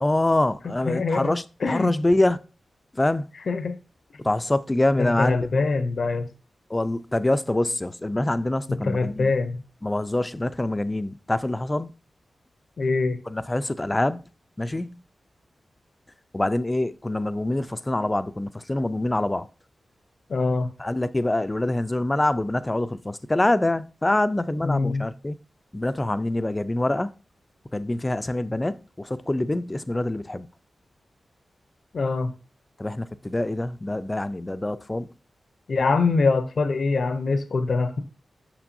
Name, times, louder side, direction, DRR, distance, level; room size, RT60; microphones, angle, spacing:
voice 1, 0.0-2.4 3.0-3.2 4.2-5.4 6.7-9.3 9.8-11.9 13.3-14.2 14.6-15.0 16.3-19.5 20.8-25.4 25.7-27.1 27.7-30.5 32.8-35.1, left 1 dB, 20° left, 0.4 m, -25 dB
voice 2, 0.6-1.3 1.6-2.0 3.5-3.8 4.9-6.3 8.7-9.6 12.8-13.2 20.3-20.7 24.6-25.1 31.9-32.3 35.7-38.0, left 3 dB, 65° left, 0.6 m, -24 dB
6.1 x 5.9 x 2.6 m
cardioid pair, 60°, 0 cm